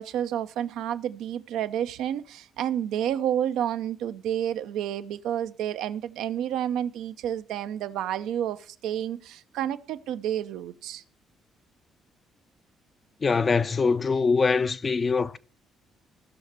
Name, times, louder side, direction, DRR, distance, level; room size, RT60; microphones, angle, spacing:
voice 1, 0.0-11.0, right 10 dB, 70° right, 0.6 m, -30 dB
voice 2, 13.2-15.4, left 4 dB, 40° left, 0.6 m, -23 dB
16.5 x 6.5 x 4.2 m
hypercardioid pair, 50°, 0 cm